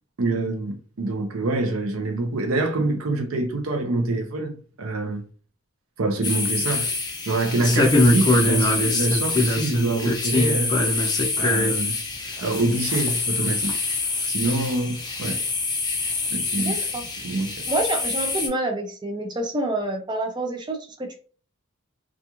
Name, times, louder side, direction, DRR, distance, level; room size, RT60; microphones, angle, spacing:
voice 1, 0.2-5.2 6.0-6.9 7.2-10.8 11.4-12.0 12.4-13.8 14.3-15.4 16.3-16.7 17.2-17.5, right 2 dB, 80° right, 0.6 m, -25 dB
sound 1, 6.2-18.5, left 2 dB, 20° left, 0.6 m, -24 dB
voice 2, 16.6-17.0 17.7-21.1, right 2 dB, 20° right, 0.4 m, -27 dB
2.4 x 2.3 x 2.9 m
head